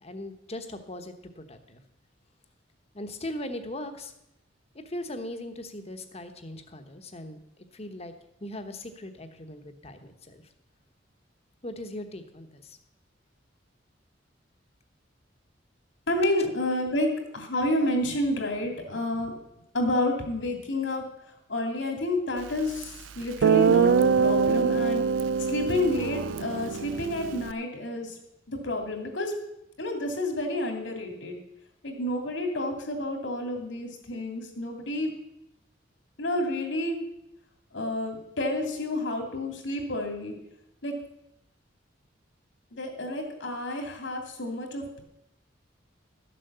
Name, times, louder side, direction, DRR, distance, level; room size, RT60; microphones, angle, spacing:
voice 1, 0.0-1.8 2.9-4.1 4.7-7.4 7.7-8.1 8.4-10.4 11.6-12.8, left 1 dB, 35° left, 8 dB, 1.2 m, -39 dB
voice 2, 16.1-17.1 17.3-19.3 19.7-21.0 21.5-25.1 25.5-28.2 28.5-29.3 29.8-31.4 31.8-35.1 36.2-37.0 37.7-40.3 40.8-41.0 42.7-45.0, left 1 dB, 75° left, 3 dB, 2.8 m, -29 dB
Guitar, 22.8-22.9 23.4-27.5, right 6 dB, 90° right, 0.4 m, -24 dB
12.5 x 7.7 x 6.9 m, 0.82 s
head